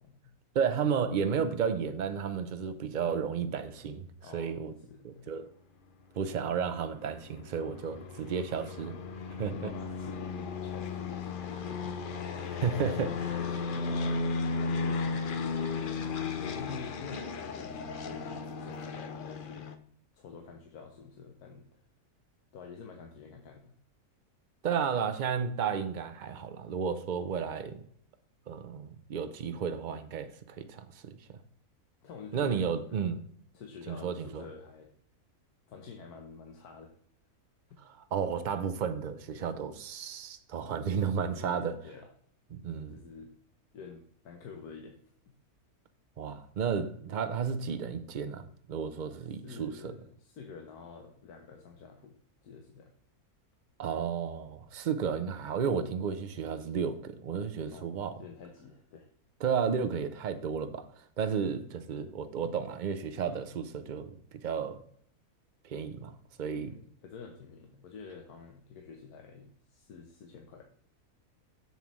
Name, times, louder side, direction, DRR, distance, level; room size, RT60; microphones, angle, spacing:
voice 1, 0.0-0.3 4.2-5.4 9.4-12.0 12.3-13.0 13.4-14.3 14.6-15.7 16.3-19.7 20.1-21.7 22.5-23.8 32.0-33.0 33.5-34.9 35.7-36.9 37.7-37.8 41.4-42.1 42.9-43.3 43.7-45.0 45.2-45.3 49.4-52.2 52.4-52.9 57.7-59.1 66.6-70.6, left 5 dB, 85° left, 1.4 m, -48 dB
voice 2, 0.5-4.1 4.3-4.7 5.0-5.5 6.2-9.0 9.4-9.7 12.6-13.1 24.6-27.8 28.5-31.4 32.3-33.2 33.9-34.5 37.9-41.7 42.5-43.0 46.2-49.9 53.8-58.1 59.4-64.8 65.6-66.8, right 6 dB, 80° right, 0.4 m, -33 dB
sound 1, 6.4-19.7, left 4 dB, 60° left, 0.5 m, -35 dB
7.3 x 7.1 x 3.0 m
omnidirectional pair, 1.6 m